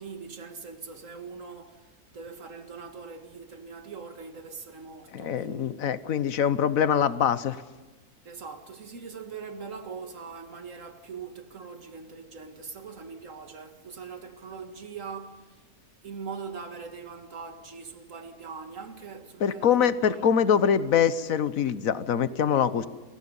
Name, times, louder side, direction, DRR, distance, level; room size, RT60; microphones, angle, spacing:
voice 1, 0.0-6.6 8.2-15.6 16.0-20.5, right 5 dB, 55° right, 2.1 m, -42 dB
voice 2, 5.1-7.6 19.4-22.9, left 8 dB, 65° left, 1.3 m, -24 dB
29.0 x 22.5 x 5.5 m
omnidirectional pair, 1.7 m